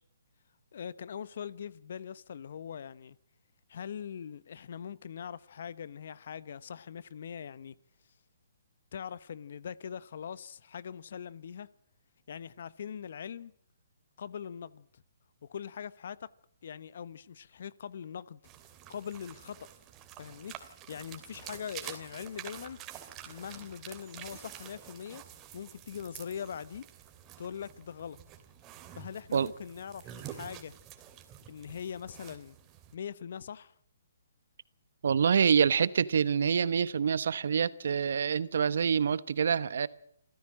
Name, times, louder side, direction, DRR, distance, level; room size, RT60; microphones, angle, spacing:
voice 1, 0.7-3.2 3.7-7.8 8.9-11.7 12.3-13.5 14.2-14.9 15.4-16.3 16.6-18.4 18.9-19.7 20.2-22.8 23.2-25.2 25.5-26.9 27.4-28.2 28.9-30.8 31.5-32.5 32.9-33.7, left 8 dB, 60° left, 1.0 m, -42 dB
sound 1, 18.4-32.9, right 11 dB, 25° right, 2.8 m, -48 dB
voice 2, 35.0-39.9, right 7 dB, 65° right, 1.1 m, -26 dB
27.0 x 14.5 x 7.5 m
hypercardioid pair, 145°, 0 cm